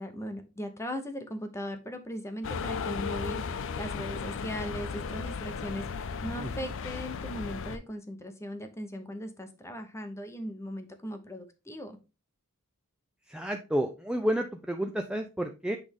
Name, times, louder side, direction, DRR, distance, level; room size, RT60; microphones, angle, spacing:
voice 1, 0.0-12.0, equal, 10° left, 0.8 m, -38 dB
sound 1, 2.4-7.8, left 5 dB, 60° left, 0.5 m, -35 dB
voice 2, 13.3-15.8, equal, 5° right, 0.4 m, -30 dB
8.4 x 3.4 x 3.5 m
head